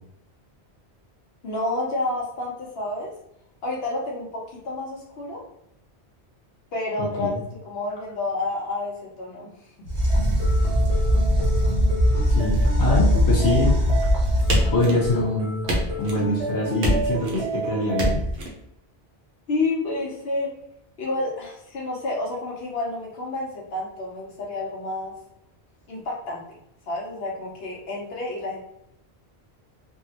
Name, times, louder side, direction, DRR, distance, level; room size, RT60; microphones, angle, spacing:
voice 1, 1.4-3.1 3.6-5.4 6.7-9.5 9.8-9.9 19.5-20.5 21.0-25.1 25.9-26.4 26.9-28.6, left 2 dB, 70° left, -3 dB, 0.9 m, -29 dB
sound 1, 9.8-14.8 18.0-18.4, equal, 20° right, 0.6 m, -21 dB
sound 2, 10.1-18.1, right 3 dB, 80° right, 1.3 m, -32 dB
voice 2, 12.3-13.7 14.7-15.7 16.0-18.2, left 2 dB, 20° left, -5 dB, 0.8 m, -24 dB
sound 3, 14.5-15.3 15.7-16.3 16.8-17.5 18.0-18.5, equal, 65° right, 0.9 m, -25 dB
3.7 x 2.0 x 2.7 m, 0.81 s
omnidirectional pair, 1.1 m